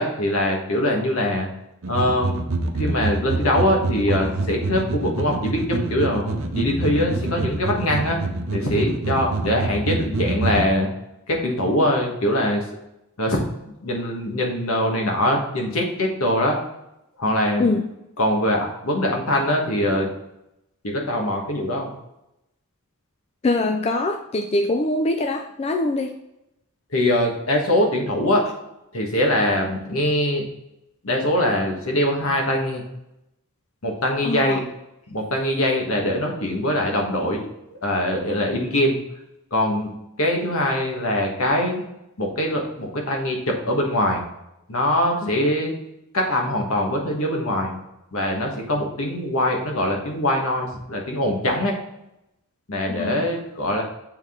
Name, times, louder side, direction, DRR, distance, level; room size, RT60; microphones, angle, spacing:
voice 1, 0.0-1.5 1.9-2.4 2.8-8.2 8.5-10.9 11.3-12.6 13.2-13.4 13.8-16.6 17.2-17.7 18.2-20.1 20.8-21.9 26.9-28.4 28.9-30.4 31.0-32.8 33.8-34.6 35.1-37.5 37.8-39.0 39.5-39.9 40.2-41.8 42.2-44.2 44.7-45.7 46.1-47.8 48.1-51.7 52.7-53.8, left 1 dB, 70° left, 1 dB, 1.4 m, -22 dB
sound 1, 1.8-10.7, right 2 dB, 65° right, 0.7 m, -26 dB
voice 2, 23.4-26.1 34.2-34.6 45.2-45.3 52.9-53.2, left 2 dB, 30° left, 4 dB, 0.3 m, -23 dB
7.3 x 3.8 x 3.7 m, 0.87 s
head